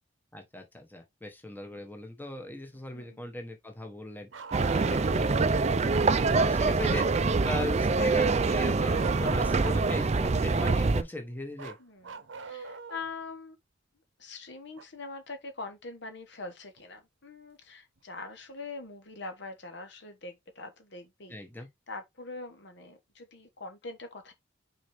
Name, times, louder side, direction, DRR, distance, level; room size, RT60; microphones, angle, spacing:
voice 1, 0.3-4.3 4.7-7.1 7.4-11.8 21.3-21.7, left 1 dB, 10° left, 1.2 m, -39 dB
voice 2, 2.9-3.3 11.8-13.6 14.2-21.4 21.9-24.3, left 3 dB, 60° left, 1.3 m, -43 dB
Bark, 4.3-5.4 8.9-10.0 11.6-13.1 14.8-14.9 16.8-16.9 18.0-18.1, right 5 dB, 70° right, 0.8 m, -43 dB
sound 1, 4.5-11.0, right 3 dB, 35° right, 0.5 m, -25 dB
6.1 x 4.4 x 3.5 m
head